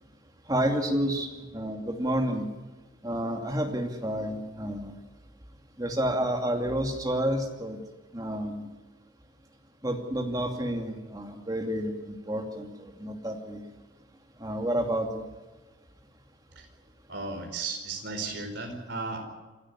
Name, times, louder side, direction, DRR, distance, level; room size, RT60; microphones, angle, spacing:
voice 1, 0.5-2.5 3.0-4.9 5.8-7.8 8.1-8.7 9.8-13.6 14.4-15.3, right 1 dB, 20° right, 3 dB, 2.6 m, -30 dB
voice 2, 17.1-19.2, right 3 dB, 60° right, 4 dB, 4.8 m, -35 dB
27.5 x 12.5 x 9.8 m, 1.2 s
head